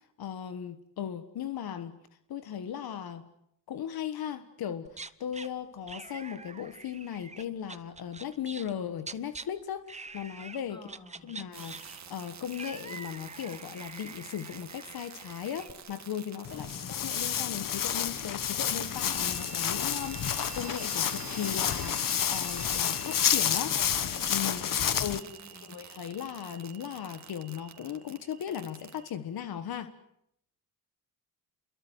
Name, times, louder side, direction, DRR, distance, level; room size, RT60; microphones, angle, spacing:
voice 1, 0.2-2.0 2.3-3.3 3.7-10.8 11.2-23.7 24.3-24.6 25.0-25.2 25.5-29.9, left 9 dB, 80° left, 10 dB, 1.6 m, -37 dB
sound 1, 4.9-5.5 5.9-8.7 9.0-9.5 9.9-10.6 10.9-15.7, right 4 dB, 20° right, 1.0 m, -45 dB
voice 2, 10.7-11.4 16.5-16.9 23.5-25.8, left 1 dB, 15° left, 2 dB, 7.6 m, -53 dB
sound 2, 11.5-29.1, right 7 dB, 50° right, 2.4 m, -47 dB
Walk footsteps, 16.4-25.2, left 9 dB, 60° left, 1.4 m, -30 dB
30.0 x 22.5 x 8.1 m, 0.76 s
cardioid pair, 120°, 36 cm